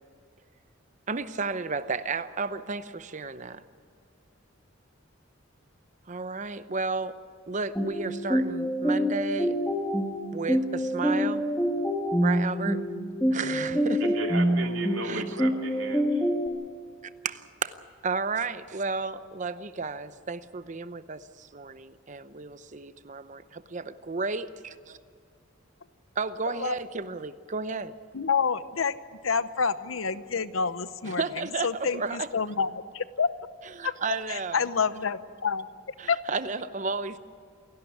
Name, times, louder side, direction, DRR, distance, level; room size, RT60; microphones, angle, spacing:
voice 1, 1.1-3.6 6.1-7.2 7.5-9.6 10.3-11.5 12.2-12.8 13.3-14.2 15.0-15.4 17.2-17.8 18.0-25.0 26.2-27.9 31.1-32.3 33.8-34.6 36.0-37.2, right 4 dB, 40° right, 13 dB, 0.7 m, -33 dB
sound 1, 7.8-16.5, equal, 10° left, 1.8 m, -26 dB
voice 2, 14.1-16.2, right 3 dB, 85° right, 3 dB, 2.6 m, -35 dB
voice 3, 28.1-28.9 29.2-31.2 31.6-33.3 33.8-33.9 34.3-36.2, left 5 dB, 85° left, 14 dB, 0.8 m, -28 dB
28.0 x 11.5 x 9.5 m, 2.2 s
head